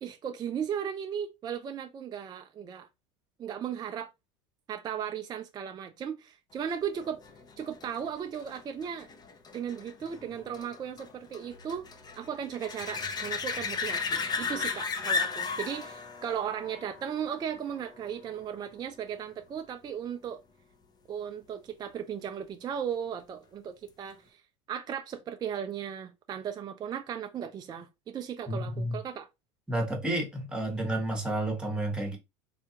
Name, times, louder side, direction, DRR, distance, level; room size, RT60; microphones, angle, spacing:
voice 1, 0.0-2.9 3.4-4.1 4.7-7.2 7.6-9.1 9.5-11.9 12.2-20.4 21.1-24.4 24.7-29.3, right 8 dB, 25° right, 0.4 m, -36 dB
sound 1, 7.0-18.3 23.9-24.0, left 5 dB, 25° left, 0.6 m, -36 dB
voice 2, 28.5-29.0 29.7-32.2, right 1 dB, 5° right, 1.1 m, -31 dB
3.4 x 2.4 x 2.8 m
supercardioid pair, 105°, 16 cm